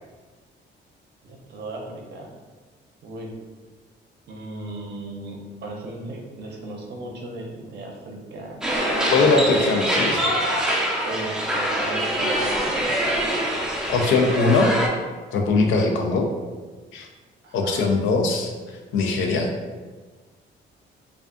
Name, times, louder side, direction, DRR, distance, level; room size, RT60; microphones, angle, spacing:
voice 1, 1.2-2.3 3.0-3.3 4.3-8.6 11.0-13.0 17.4-17.9, right 2 dB, 60° right, 1 dB, 0.6 m, -36 dB
sound 1, 8.6-14.9, equal, 5° right, 0.5 m, -24 dB
voice 2, 9.1-10.3 13.9-14.8 15.3-16.3 16.9-17.1 17.5-18.5 18.9-19.5, left 3 dB, 80° left, 3 dB, 0.4 m, -20 dB
2.4 x 2.3 x 2.4 m, 1.4 s
cardioid pair, 90°, 20 cm